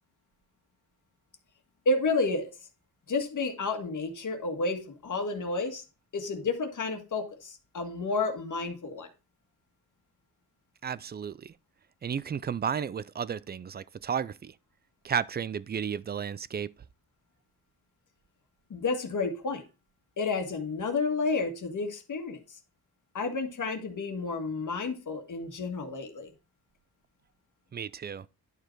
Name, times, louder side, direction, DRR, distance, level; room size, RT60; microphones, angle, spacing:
voice 1, 1.8-2.5 3.1-5.8 6.1-9.1 18.7-19.6 20.2-22.6 23.1-26.3, left 3 dB, 55° left, 1.7 m, -31 dB
voice 2, 10.8-11.5 12.0-14.6 15.0-16.7 27.7-28.3, right 7 dB, 30° right, 0.3 m, -33 dB
10.5 x 4.9 x 4.5 m
cardioid pair, 105°, 38 cm